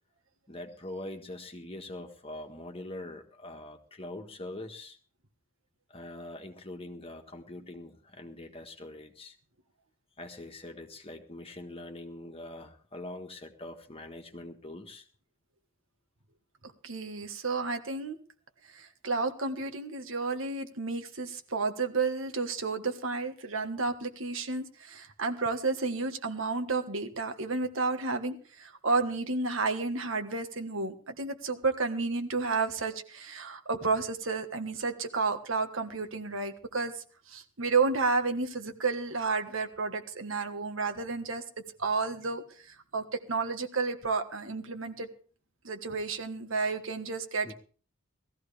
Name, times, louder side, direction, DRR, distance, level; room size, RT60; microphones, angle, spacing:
voice 1, 0.5-5.0 5.9-9.3 10.2-15.0 47.4-47.5, left 1 dB, 25° left, 4 dB, 1.5 m, -43 dB
voice 2, 16.8-18.2 18.7-36.9 37.3-41.4 41.8-42.4 42.7-45.1 45.6-47.5, right 4 dB, 65° right, 7 dB, 1.5 m, -31 dB
18.5 x 14.0 x 3.4 m, 0.40 s
head